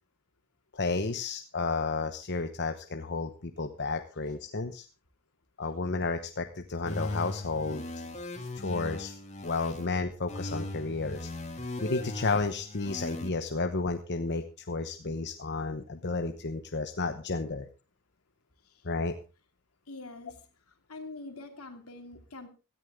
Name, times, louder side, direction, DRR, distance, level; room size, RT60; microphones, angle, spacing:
voice 1, 0.7-4.8 5.6-7.8 8.6-11.3 11.8-17.7 18.8-19.1, left 3 dB, 50° left, 7 dB, 1.0 m, -32 dB
sound 1, 6.9-9.9 10.3-13.3, left 2 dB, 30° left, 2.4 m, -38 dB
voice 2, 19.9-20.5 20.9-22.5, left 2 dB, 80° left, 5 dB, 2.8 m, -44 dB
17.0 x 13.5 x 3.7 m, 0.31 s
head